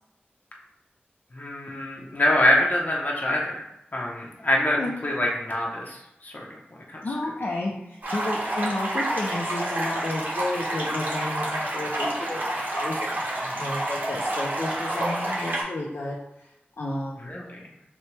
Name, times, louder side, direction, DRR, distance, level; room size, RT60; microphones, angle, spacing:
voice 1, 1.3-3.6 3.9-6.6 6.9-7.1 13.4-13.5 14.9-15.0 17.2-17.6, left 1 dB, 45° left, -2 dB, 0.7 m, -25 dB
voice 2, 7.0-13.1 13.6-16.2 16.8-17.2, left 2 dB, 85° left, -4 dB, 0.6 m, -31 dB
sound 1, 8.0-15.6, right 1 dB, 50° right, 1.2 m, -29 dB
5.8 x 2.2 x 3.3 m, 0.85 s
wide cardioid pair, 80°, 4 cm